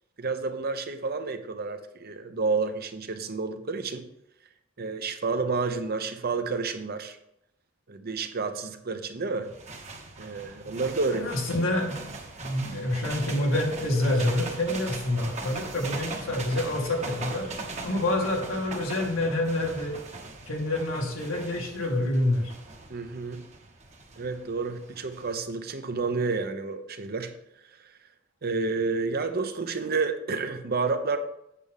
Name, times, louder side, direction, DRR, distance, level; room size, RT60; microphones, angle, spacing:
voice 1, 0.2-4.1 4.8-7.2 7.9-9.5 10.2-11.3 22.9-23.4 24.2-27.3 27.8-27.9 28.4-31.2, right 4 dB, 50° right, 8 dB, 0.8 m, -30 dB
sound 1, 9.4-25.3, right 3 dB, 35° right, 1.2 m, -40 dB
voice 2, 11.1-12.1 12.4-17.5 17.8-20.0 20.4-22.5, left 1 dB, 90° left, -1 dB, 2.3 m, -27 dB
8.4 x 6.8 x 3.7 m, 0.81 s
head